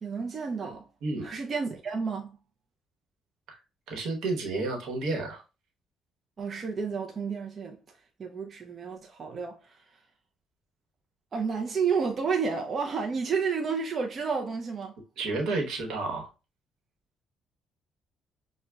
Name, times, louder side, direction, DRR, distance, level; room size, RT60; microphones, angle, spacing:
voice 1, 0.0-0.9 1.2-2.4 6.4-7.8 8.2-9.8 11.3-15.0, right 5 dB, 40° right, 0.4 m, -31 dB
voice 2, 3.9-5.4 15.2-16.3, right 3 dB, 75° right, 0.9 m, -31 dB
6.0 x 2.1 x 2.2 m
cardioid pair, 105°, 0 cm